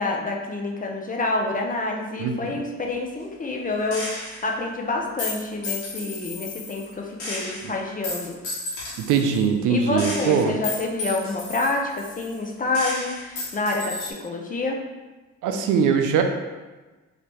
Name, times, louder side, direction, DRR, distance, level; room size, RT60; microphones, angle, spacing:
voice 1, 0.0-8.4 9.7-14.8, left 2 dB, 30° left, 0 dB, 0.6 m, -28 dB
voice 2, 2.2-2.6 7.6-7.7 9.1-10.5 15.4-16.2, right 6 dB, 85° right, 5 dB, 0.5 m, -21 dB
Gunshot gunfire, 3.9-4.5 5.2-6.9 7.2-9.4 10.0-12.5 12.7-14.1, left 3 dB, 90° left, 1.4 m, -33 dB
3.4 x 2.8 x 3.0 m, 1.2 s
cardioid pair, 90°, 30 cm